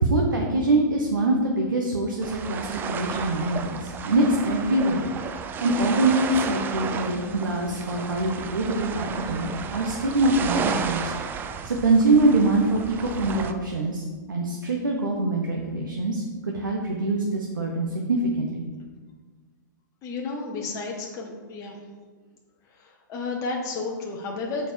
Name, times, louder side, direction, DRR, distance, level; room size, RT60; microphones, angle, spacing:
voice 1, 0.0-5.1 5.6-11.1 11.6-18.6, right 2 dB, 85° right, 0 dB, 1.0 m, -24 dB
sound 1, 2.2-13.5, right 6 dB, 20° right, 0.4 m, -32 dB
voice 2, 20.0-21.8 22.6-24.7, left 3 dB, 30° left, 0 dB, 1.1 m, -32 dB
7.1 x 4.5 x 4.6 m, 1.4 s
hypercardioid pair, 120°, 11 cm